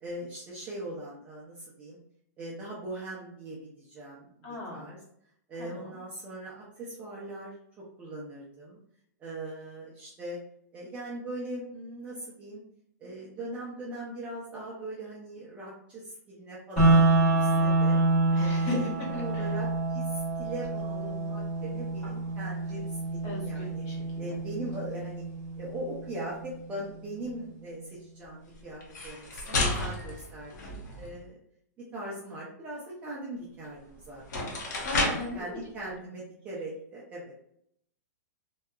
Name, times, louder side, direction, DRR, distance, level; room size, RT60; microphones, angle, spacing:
voice 1, 0.0-2.0 2.4-4.3 4.7-5.0 5.5-7.5 8.0-8.8 9.2-10.4 10.7-12.6 13.0-18.0 18.4-22.8 23.1-23.8 24.2-25.2 25.6-31.4 31.9-34.5 34.9-37.4, right 1 dB, 15° right, -6 dB, 0.3 m, -40 dB
voice 2, 4.4-4.9 5.6-5.9 18.3-19.6 23.2-24.4 34.8-35.9, left 2 dB, 25° left, -5 dB, 0.9 m, -37 dB
sound 1, 16.8-26.7, right 2 dB, 10° left, 1.2 m, -27 dB
sound 2, 28.8-31.2 33.6-33.7 34.2-35.4, left 2 dB, 75° left, 0.8 m, -31 dB
2.7 x 2.2 x 2.2 m, 0.73 s
hypercardioid pair, 165°, 10 cm